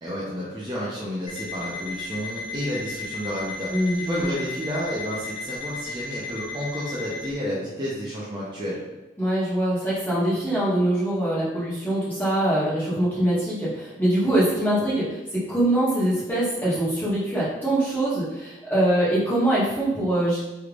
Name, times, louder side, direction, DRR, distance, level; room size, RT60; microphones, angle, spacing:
voice 1, 0.0-8.8, equal, 25° right, -7 dB, 0.6 m, -31 dB
Alarm, 1.3-7.3, left 3 dB, 35° left, 0.8 m, -35 dB
voice 2, 3.7-4.3 9.2-20.4, right 1 dB, 10° left, -10 dB, 1.2 m, -23 dB
3.3 x 3.1 x 2.4 m, 1.1 s
head